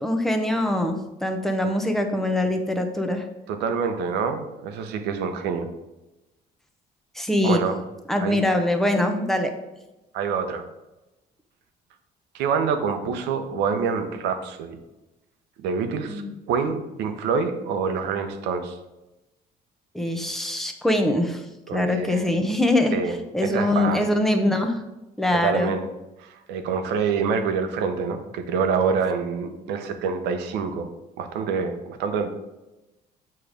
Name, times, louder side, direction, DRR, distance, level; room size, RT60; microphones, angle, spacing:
voice 1, 0.0-3.2 7.2-7.6 8.1-9.5 16.1-16.3 19.9-21.4 21.7-22.9 23.3-24.8 25.2-25.7, left 1 dB, ahead, 4 dB, 0.8 m, -23 dB
voice 2, 3.5-5.7 7.4-7.8 8.2-8.4 10.1-10.7 12.3-14.8 15.6-16.2 16.5-18.8 21.7-22.3 22.9-23.1 23.4-24.1 25.3-25.9 26.2-30.9 31.2-32.3, right 5 dB, 90° right, 7 dB, 0.8 m, -26 dB
7.0 x 3.2 x 5.1 m, 1.0 s
cardioid pair, 110°, 17 cm